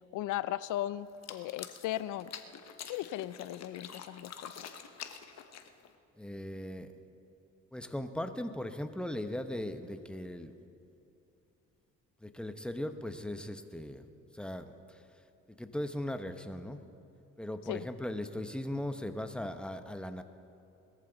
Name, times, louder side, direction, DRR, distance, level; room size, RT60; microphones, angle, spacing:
voice 1, 0.1-2.3 2.9-4.6 17.7-17.9, left 13 dB, 85° left, 17 dB, 0.5 m, -37 dB
sound 1, 1.1-6.0, left 8 dB, 60° left, 1.1 m, -47 dB
voice 2, 6.2-6.9 7.7-10.5 12.2-14.1 14.3-15.0 15.5-16.8 17.4-20.2, left 1 dB, 5° left, 8 dB, 0.9 m, -38 dB
20.5 x 14.0 x 4.0 m, 2.8 s
cardioid pair, 90°, 30 cm